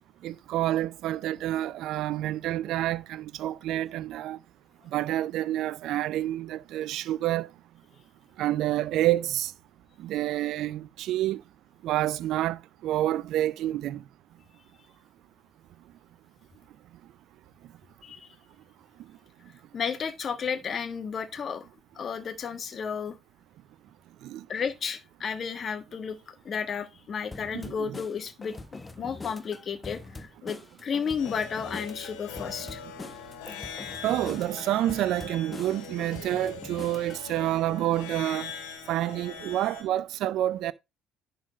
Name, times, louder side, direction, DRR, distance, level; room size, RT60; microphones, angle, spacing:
voice 1, 0.2-4.4 4.9-7.5 8.4-9.5 10.0-11.4 11.8-14.0 24.2-24.4 27.5-27.9 34.0-38.6 38.9-40.7, right 14 dB, 65° right, 0.3 m, -28 dB
voice 2, 18.0-18.3 19.7-21.7 21.9-23.2 24.5-32.8, left 6 dB, 45° left, 1.4 m, -33 dB
sound 1, 27.3-37.2, left 3 dB, 25° left, 0.8 m, -43 dB
sound 2, 31.2-39.8, left 6 dB, 75° left, 1.9 m, -42 dB
10.5 x 3.9 x 4.9 m
hypercardioid pair, 60°, 0 cm